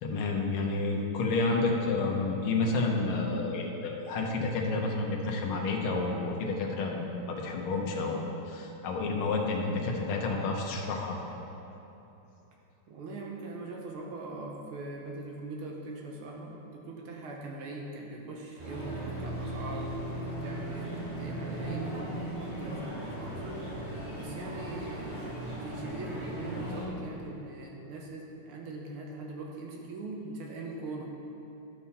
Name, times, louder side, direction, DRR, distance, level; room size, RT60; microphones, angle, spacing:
voice 1, 0.0-11.2, left 3 dB, 75° left, 0 dB, 1.7 m, -30 dB
voice 2, 12.9-23.4 24.1-31.1, right 2 dB, 80° right, -1 dB, 1.8 m, -41 dB
sound 1, 18.6-26.9, right 1 dB, 30° right, 1.9 m, -37 dB
12.0 x 5.6 x 4.1 m, 3.0 s
omnidirectional pair, 2.4 m